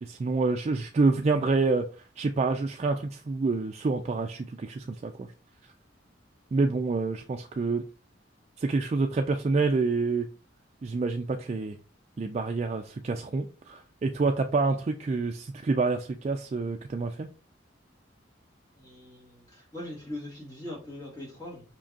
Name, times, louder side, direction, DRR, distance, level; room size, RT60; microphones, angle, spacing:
voice 1, 0.0-1.9 2.2-5.3 6.5-7.8 8.6-10.3 10.8-11.8 12.2-17.3, right 3 dB, 35° right, 4 dB, 0.3 m, -27 dB
voice 2, 18.8-21.6, left 1 dB, 20° left, -5 dB, 1.9 m, -41 dB
5.2 x 3.7 x 2.5 m, 0.36 s
head